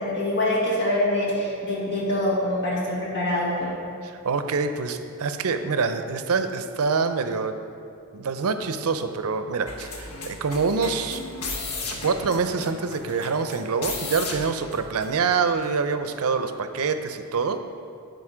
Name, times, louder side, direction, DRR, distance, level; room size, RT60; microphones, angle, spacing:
voice 1, 0.0-3.7, left 1 dB, 55° left, -5 dB, 1.6 m, -25 dB
voice 2, 4.2-7.5 8.1-11.2 12.0-17.6, right 5 dB, 70° right, 9 dB, 0.5 m, -25 dB
sound 1, 9.7-15.4 15.6-15.7, left 3 dB, 75° left, 1.1 m, -35 dB
11.5 x 4.0 x 5.0 m, 2.5 s
head